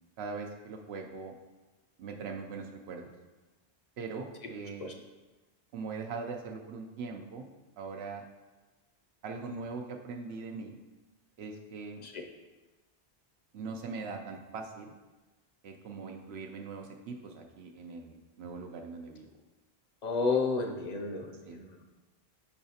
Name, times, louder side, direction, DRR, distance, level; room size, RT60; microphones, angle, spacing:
voice 1, 0.2-1.3 2.0-3.1 4.0-5.0 5.7-7.5 7.8-8.2 9.2-10.8 11.4-12.0 13.5-14.9 15.6-19.3 21.4-21.6, right 4 dB, 85° right, 3 dB, 0.9 m, -41 dB
voice 2, 20.0-21.8, left 4 dB, 50° left, 3 dB, 0.7 m, -31 dB
7.0 x 5.6 x 2.8 m, 1.2 s
omnidirectional pair, 1.0 m